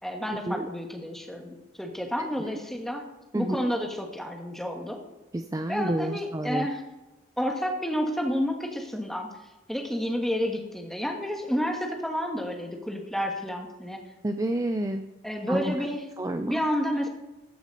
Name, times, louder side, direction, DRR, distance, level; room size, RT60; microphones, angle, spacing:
voice 1, 0.0-3.1 3.3-5.0 5.7-6.8 7.4-9.3 9.7-14.0 15.2-16.0 16.5-17.1, equal, ahead, 2 dB, 1.4 m, -30 dB
voice 2, 2.2-2.5 3.3-3.6 5.3-6.7 14.2-15.0 15.5-15.7 16.2-16.6, right 1 dB, 15° right, 8 dB, 0.4 m, -29 dB
14.5 x 6.3 x 5.3 m, 1.1 s
head